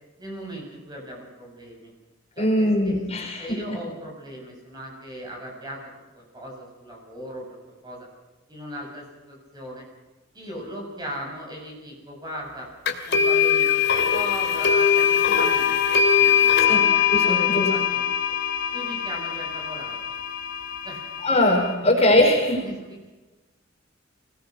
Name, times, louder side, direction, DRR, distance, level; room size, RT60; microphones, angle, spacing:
voice 1, 0.2-1.9 2.3-5.8 6.1-8.1 8.5-9.8 10.3-12.7 13.1-16.8 17.2-18.0 18.7-20.2 20.8-21.0 22.6-23.1, equal, 20° right, -1 dB, 7.9 m, -38 dB
voice 2, 2.4-3.8 16.4-16.8 17.1-17.7 21.2-22.6, left 1 dB, 35° left, 0 dB, 4.9 m, -21 dB
sound 1, 12.9-21.7, left 7 dB, 60° left, 2.5 m, -22 dB
25.0 x 19.0 x 6.1 m, 1.1 s
head